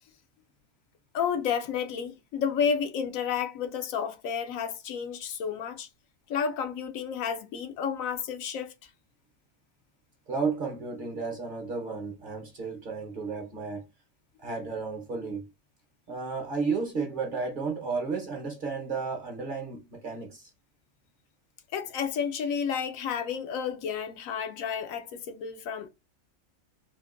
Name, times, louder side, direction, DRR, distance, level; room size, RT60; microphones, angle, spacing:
voice 1, 1.1-5.9 6.3-8.7 21.7-25.9, left 7 dB, 80° left, 1.0 m, -31 dB
voice 2, 10.3-13.8 14.4-15.5 16.1-20.5, right 4 dB, 45° right, 0.9 m, -33 dB
3.5 x 2.6 x 2.5 m
omnidirectional pair, 1.4 m